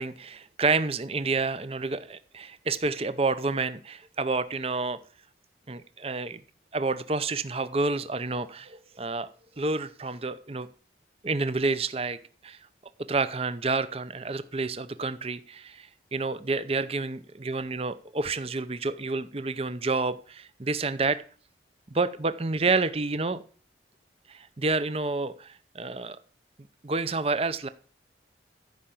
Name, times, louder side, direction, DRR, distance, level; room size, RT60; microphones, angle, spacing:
voice 1, 0.0-5.0 5.7-6.4 6.7-9.3 9.6-10.7 11.2-12.2 12.4-12.6 13.1-21.2 21.9-23.4 24.3-26.2 26.8-27.7, right 3 dB, 30° right, 13 dB, 0.7 m, -29 dB
14.0 x 5.6 x 7.7 m, 0.42 s
head